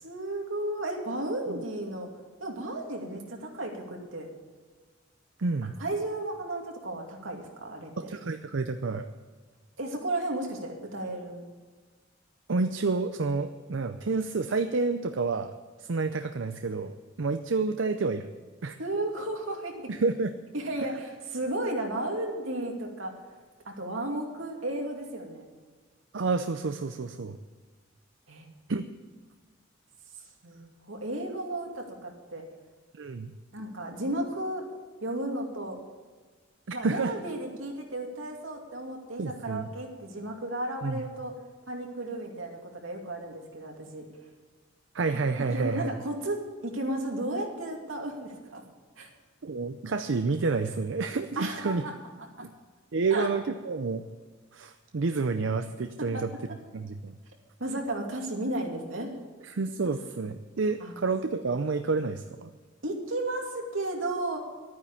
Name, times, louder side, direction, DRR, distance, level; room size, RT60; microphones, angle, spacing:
voice 1, 0.0-2.1 2.4-4.3 5.8-7.9 9.8-11.4 18.8-19.9 20.5-23.2 23.6-25.4 28.3-28.5 30.4-32.4 33.5-34.6 35.0-35.8 36.7-41.3 41.7-44.1 45.5-48.6 49.0-49.1 51.4-51.9 52.4-52.5 53.1-53.3 56.1-56.2 57.6-59.1 60.8-61.0 62.8-64.4, right 1 dB, 90° right, 1 dB, 2.5 m, -34 dB
voice 2, 5.4-5.7 8.0-9.1 12.5-15.5 15.8-18.3 18.6-18.8 19.9-20.3 26.1-27.4 28.7-28.8 33.0-33.3 36.7-37.1 39.2-39.7 40.8-41.0 44.9-45.9 49.4-51.8 52.9-54.0 54.5-56.3 56.7-57.2 59.4-62.5, right 4 dB, 70° right, 8 dB, 0.6 m, -29 dB
12.5 x 9.5 x 7.2 m, 1.4 s
head